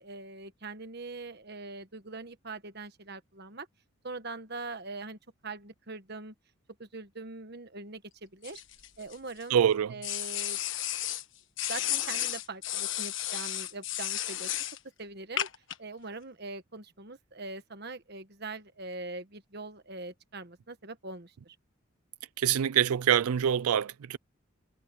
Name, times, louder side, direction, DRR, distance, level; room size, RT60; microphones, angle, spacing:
voice 1, 0.0-3.7 4.0-6.3 6.8-8.6 9.0-9.6 9.9-10.6 11.7-14.5 15.0-15.5 15.8-21.5, right 3 dB, 50° right, 1.4 m, -42 dB
sound 1, 8.4-9.4 10.0-11.2 11.6-14.8 15.4-15.8, left 12 dB, 60° left, 1.5 m, -33 dB
voice 2, 9.5-9.9 22.4-24.2, right 9 dB, 85° right, 0.4 m, -25 dB
head